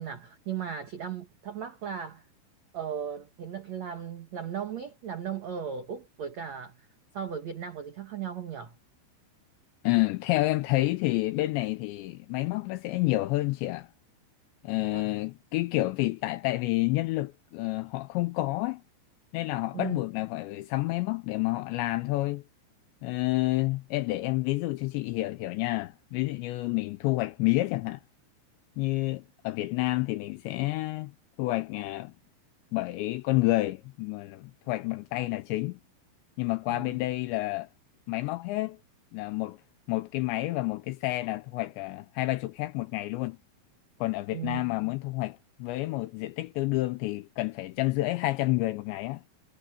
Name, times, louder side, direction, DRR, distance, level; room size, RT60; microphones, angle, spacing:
voice 1, 0.0-2.2 2.7-6.9 7.1-8.8 14.7-15.1 19.7-20.0 36.7-37.0 44.3-44.7, right 8 dB, 80° right, 1.5 m, -37 dB
voice 2, 9.8-13.9 14.6-18.8 19.3-22.4 23.0-28.0 28.8-31.1 31.4-32.1 32.7-35.8 36.4-37.7 38.1-38.8 39.1-39.6 39.9-43.4 44.0-49.2, left 19 dB, 85° left, 2.6 m, -29 dB
omnidirectional pair, 5.7 m